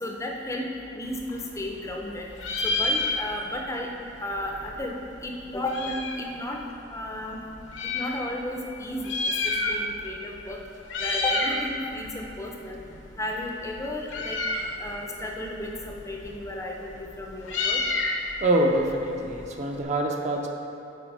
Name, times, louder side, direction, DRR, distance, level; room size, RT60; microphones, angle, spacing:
voice 1, 0.0-2.3 2.6-3.9 4.2-4.9 5.2-6.6 6.9-7.4 7.8-9.2 9.4-10.6 11.0-12.8 13.2-14.4 14.8-17.8, left 1 dB, 15° left, 0 dB, 0.5 m, -33 dB
Meow, 1.1-2.1 2.3-3.6 3.9-4.0 4.2-6.3 6.9-8.1 8.9-10.1 10.4-10.6 10.8-11.6 12.0-19.8, left 3 dB, 70° left, 0.8 m, -30 dB
voice 2, 18.4-20.5, right 1 dB, 40° right, 1 dB, 0.6 m, -25 dB
7.9 x 4.4 x 4.6 m, 2.9 s
head